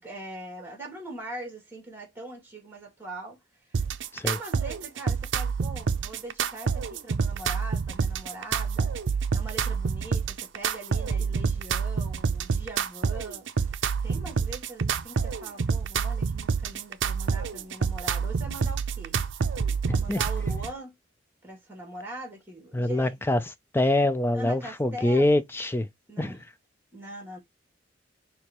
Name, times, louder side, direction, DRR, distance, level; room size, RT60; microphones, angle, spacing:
voice 1, 0.0-3.4 3.6-3.8 4.2-19.2 19.9-20.9 21.4-23.2 24.3-25.3 26.1-26.4 26.9-27.4, right 2 dB, 10° right, 2.4 m, -42 dB
sound 1, 3.7-20.7, right 5 dB, 70° right, 0.5 m, -28 dB
voice 2, 19.9-20.2 22.7-23.4 23.7-25.9 26.2-26.4, left 1 dB, 10° left, 0.4 m, -24 dB
6.1 x 2.8 x 3.0 m
head